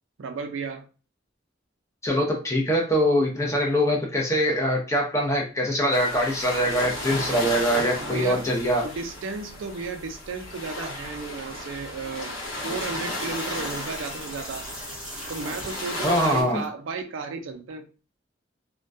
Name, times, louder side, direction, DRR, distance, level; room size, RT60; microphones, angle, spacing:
voice 1, 0.2-0.9 8.1-8.5 8.8-12.3 12.6-14.7 15.3-17.9, right 4 dB, 75° right, 0.4 m, -34 dB
voice 2, 2.0-8.9 16.0-16.6, equal, 15° left, 0.6 m, -23 dB
sound 1, 5.9-16.4, left 1 dB, 85° left, 1.0 m, -34 dB
sound 2, 12.3-16.6, equal, 5° right, 0.9 m, -41 dB
2.2 x 2.2 x 2.6 m
head